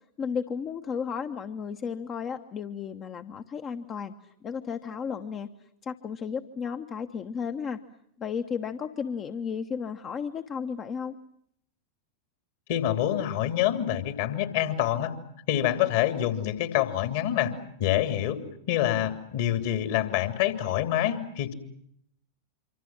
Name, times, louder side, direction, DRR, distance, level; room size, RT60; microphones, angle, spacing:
voice 1, 0.0-4.1 4.4-5.5 5.8-7.8 8.2-11.1, left 6 dB, 30° left, 7 dB, 1.2 m, -33 dB
voice 2, 12.7-15.1 15.5-17.5 17.8-21.5, left 12 dB, 50° left, 8 dB, 3.1 m, -26 dB
26.5 x 25.5 x 7.4 m, 0.71 s
figure-of-eight pair, 90°, 0 cm